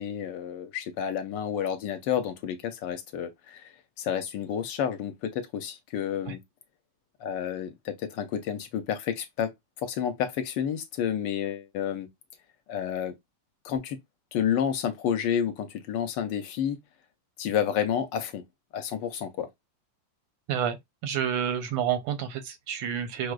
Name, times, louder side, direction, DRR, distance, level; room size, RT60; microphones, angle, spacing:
voice 1, 0.0-6.4 7.2-9.5 9.8-12.1 12.7-13.1 13.6-14.0 14.3-16.8 17.4-18.4 18.7-19.5, left 9 dB, 75° left, 1.2 m, -30 dB
voice 2, 21.0-23.3, right 8 dB, 90° right, 1.5 m, -29 dB
4.8 x 2.0 x 2.3 m
omnidirectional pair, 2.1 m